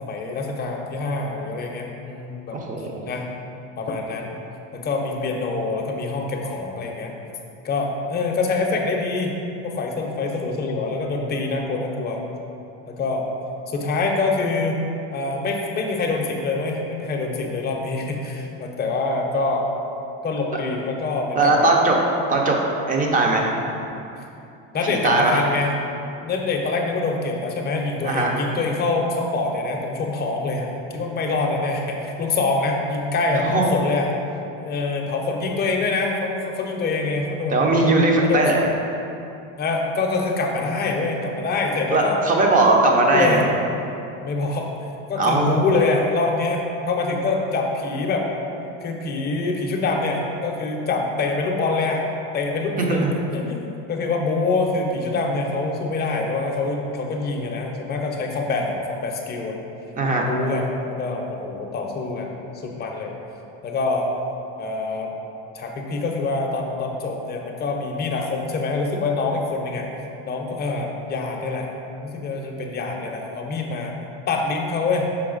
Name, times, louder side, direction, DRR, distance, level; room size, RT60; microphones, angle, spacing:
voice 1, 0.0-2.6 3.0-3.2 3.8-4.3 4.7-7.1 7.6-9.3 9.6-12.2 12.9-13.3 13.7-14.8 15.1-19.7 20.2-21.6 24.7-25.7 26.2-34.1 34.6-37.9 38.2-38.4 39.6-42.2 43.1-43.4 44.2-44.7 45.1-48.3 48.8-52.0 52.3-53.6 53.9-59.6 60.1-63.1 63.6-64.1 64.6-65.1 65.5-69.9 70.2-71.7 72.0-73.9 74.3-75.1, left 3 dB, 25° left, 0 dB, 0.7 m, -25 dB
voice 2, 2.5-2.9 21.4-22.0 22.3-22.6 22.9-23.5 24.9-25.4 28.0-28.3 33.4-33.7 37.5-38.6 41.9-43.4 45.2-45.6 52.8-53.1 60.0-60.3, right 2 dB, 25° right, 0 dB, 0.7 m, -19 dB
5.9 x 4.1 x 3.9 m, 2.8 s
cardioid pair, 140°, 35 cm